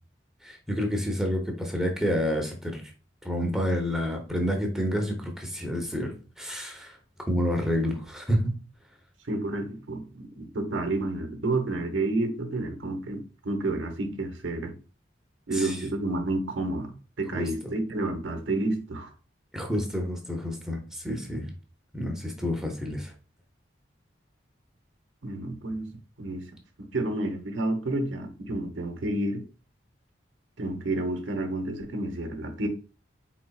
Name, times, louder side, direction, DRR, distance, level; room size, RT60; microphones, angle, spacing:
voice 1, 0.4-2.8 3.2-7.0 7.3-8.5 15.5-15.8 17.3-17.5 19.5-21.5 21.9-23.1, equal, 5° right, 0.7 m, -29 dB
voice 2, 9.3-14.7 15.5-16.9 17.2-19.1 25.2-25.9 26.2-26.5 26.8-29.4 30.6-32.7, right 2 dB, 90° right, 0.9 m, -30 dB
4.4 x 3.9 x 2.3 m
head